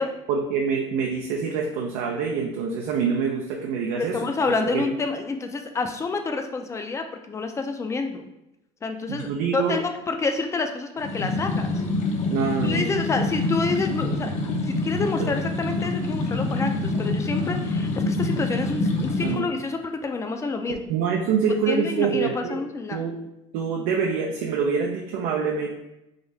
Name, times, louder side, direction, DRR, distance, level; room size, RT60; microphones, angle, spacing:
voice 1, 0.3-4.3 4.7-4.8 9.1-9.8 12.3-12.8 19.1-19.5 20.7-22.6 22.9-23.2 23.5-25.7, right 6 dB, 75° right, 0 dB, 0.5 m, -25 dB
voice 2, 4.0-8.2 8.8-11.8 12.6-14.4 14.7-20.9 21.7-23.0, left 3 dB, 20° left, 5 dB, 0.5 m, -28 dB
sound 1, 11.0-19.3, left 2 dB, 50° left, 0.7 m, -26 dB
3.7 x 2.6 x 3.2 m, 0.87 s
supercardioid pair, 100°, 15 cm